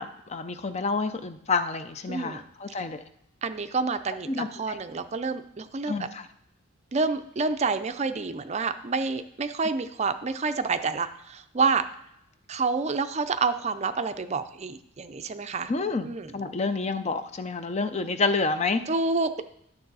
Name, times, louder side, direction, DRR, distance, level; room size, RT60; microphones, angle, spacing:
voice 1, 0.0-3.0 4.3-4.8 5.9-6.3 15.7-18.8, left 4 dB, 30° left, 9 dB, 0.5 m, -29 dB
voice 2, 2.1-2.4 3.4-6.1 6.9-11.8 12.5-15.7 16.0-16.3 18.9-19.4, right 4 dB, 30° right, 10 dB, 0.4 m, -28 dB
12.0 x 6.8 x 4.0 m, 0.78 s
head